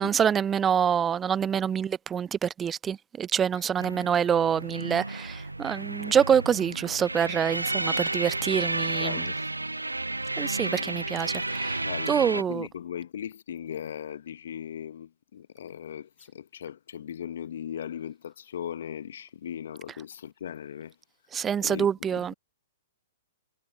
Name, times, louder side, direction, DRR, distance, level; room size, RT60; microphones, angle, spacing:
voice 1, 0.0-9.3 10.4-12.7 21.3-22.3, right 8 dB, 20° right, 0.8 m, -26 dB
sound 1, 3.8-12.4, right 2 dB, 85° right, 0.4 m, -32 dB
voice 2, 9.0-9.4 10.7-10.9 11.8-20.9 21.6-22.4, left 9 dB, 60° left, 1.5 m, -38 dB
figure-of-eight pair, 110°, 0 cm